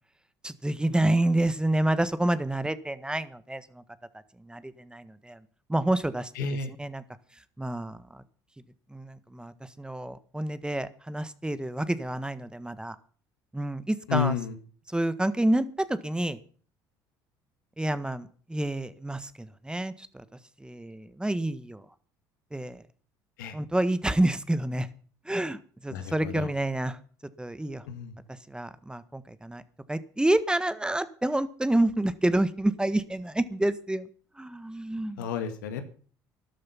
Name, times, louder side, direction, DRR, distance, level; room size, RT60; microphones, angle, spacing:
voice 1, 0.4-3.8 4.4-5.4 5.7-6.3 6.7-7.0 7.6-8.2 8.9-12.9 13.5-14.4 14.9-16.4 17.8-20.2 20.6-21.8 22.5-22.8 23.5-24.9 25.2-27.0 27.4-27.8 28.5-29.6 29.9-34.1 34.4-35.3, right 1 dB, 10° right, 14 dB, 1.6 m, -28 dB
voice 2, 6.4-6.7 14.1-14.5 23.4-23.5 25.9-26.5 27.9-28.1 35.2-35.8, left 7 dB, 85° left, 8 dB, 2.2 m, -31 dB
13.5 x 12.0 x 5.8 m, 0.43 s
hypercardioid pair, 65°, 10 cm